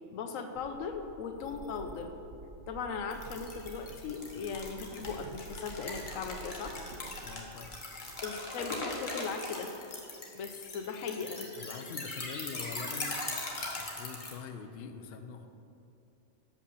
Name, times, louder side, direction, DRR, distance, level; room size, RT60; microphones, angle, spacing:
voice 1, 0.1-2.1 2.7-6.7 8.2-9.7 10.3-11.5, left 5 dB, 80° left, 6 dB, 1.0 m, -38 dB
sound 1, 0.6-7.8, right 4 dB, 65° right, 0.5 m, -50 dB
sound 2, 3.1-14.3, left 2 dB, 40° left, 1.2 m, -40 dB
voice 2, 7.2-7.8 11.6-13.2 13.8-15.5, left 6 dB, 60° left, 7 dB, 0.7 m, -44 dB
6.7 x 5.2 x 6.8 m, 2.8 s
omnidirectional pair, 1.4 m